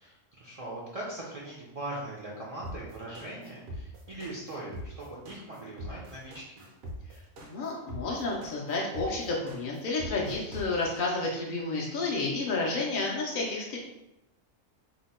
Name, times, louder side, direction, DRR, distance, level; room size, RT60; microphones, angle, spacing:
voice 1, 0.0-6.7, right 1 dB, 65° right, -5 dB, 0.3 m, -40 dB
sound 1, 2.6-11.0, equal, 85° right, 1.1 m, -42 dB
voice 2, 7.4-13.8, left 3 dB, 65° left, -3 dB, 0.5 m, -31 dB
2.8 x 2.1 x 4.0 m, 0.91 s
omnidirectional pair, 1.4 m